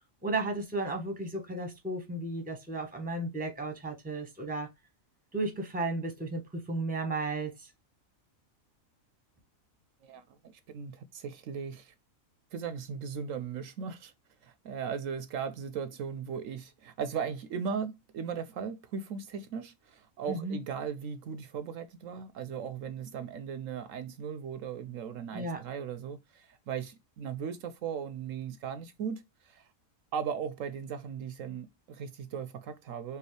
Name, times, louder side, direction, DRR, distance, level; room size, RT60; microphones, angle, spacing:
voice 1, 0.2-4.7 5.3-7.7 20.3-20.6 25.3-25.6, right 2 dB, 5° right, 1.0 m, -34 dB
voice 2, 10.0-11.9 12.5-14.1 14.4-29.7 30.1-33.2, right 7 dB, 75° right, 0.9 m, -38 dB
4.7 x 2.6 x 3.1 m
omnidirectional pair, 1.4 m